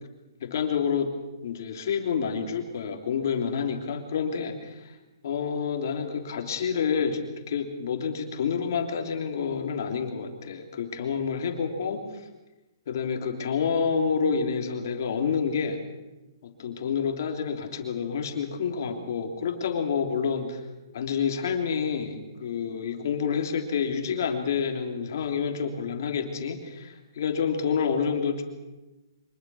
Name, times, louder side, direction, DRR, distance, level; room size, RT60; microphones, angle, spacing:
voice 1, 0.4-1.1 1.4-5.0 5.2-7.2 7.5-12.2 12.9-15.8 16.4-20.6 20.9-28.4, left 6 dB, 45° left, 5 dB, 3.0 m, -28 dB
24.5 x 20.5 x 6.2 m, 1.1 s
hypercardioid pair, 175°, 2 cm